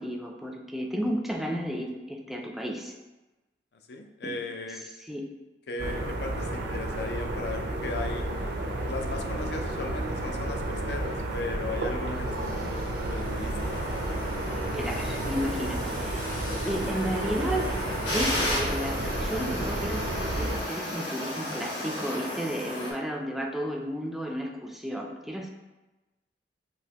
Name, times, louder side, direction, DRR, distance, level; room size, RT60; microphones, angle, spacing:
voice 1, 0.0-2.9 4.2-4.3 5.1-5.2 14.7-16.2 16.6-25.5, equal, ahead, 1 dB, 0.4 m, -33 dB
voice 2, 3.7-4.8 5.7-8.3 8.8-13.6, left 3 dB, 65° left, 4 dB, 0.4 m, -37 dB
sound 1, 5.8-20.6, right 1 dB, 75° right, 0.5 m, -31 dB
sound 2, 7.8-22.9, left 1 dB, 80° left, 1.4 m, -36 dB
5.1 x 2.8 x 2.8 m, 1.1 s
head